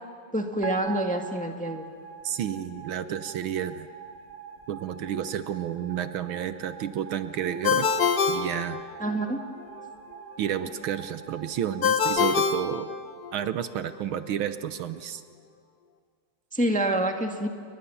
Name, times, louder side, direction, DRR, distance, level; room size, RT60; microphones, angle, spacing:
voice 1, 0.3-1.8 9.0-9.4 16.5-17.5, right 1 dB, 5° left, 4 dB, 1.4 m, -27 dB
sound 1, 0.6-12.9, right 6 dB, 25° right, 3.0 m, -44 dB
voice 2, 2.2-3.9 4.7-7.9 8.3-8.8 10.4-12.9 13.3-15.2, right 9 dB, 70° right, 11 dB, 1.6 m, -31 dB
Ringtone, 7.6-9.3 11.8-13.5, left 6 dB, 50° left, 1.6 m, -25 dB
29.0 x 22.0 x 7.0 m, 2.1 s
omnidirectional pair, 2.4 m